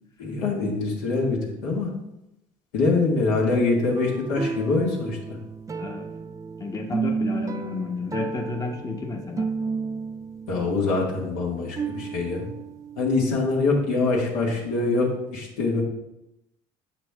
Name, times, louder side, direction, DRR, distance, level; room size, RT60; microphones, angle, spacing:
voice 1, 0.2-1.9 2.7-5.4 10.5-12.5 13.0-15.8, left 3 dB, 85° left, -2 dB, 1.9 m, -24 dB
sound 1, 4.0-13.6 14.0-14.1, right 5 dB, 20° right, 0.4 m, -33 dB
voice 2, 5.8-6.1 6.6-9.5, left 4 dB, 25° left, 2 dB, 0.9 m, -31 dB
7.2 x 5.9 x 3.5 m, 0.91 s
supercardioid pair, 85°, 15 cm